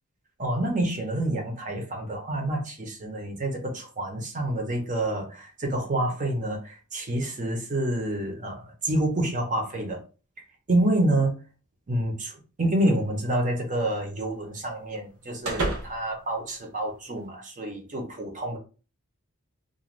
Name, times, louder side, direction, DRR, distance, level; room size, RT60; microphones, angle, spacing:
voice 1, 0.4-10.0 10.7-11.4 11.9-18.6, right 1 dB, 35° right, 2 dB, 0.7 m, -28 dB
sound 1, 12.9-17.3, right 2 dB, 80° right, 0.8 m, -37 dB
2.5 x 2.2 x 3.1 m, 0.35 s
head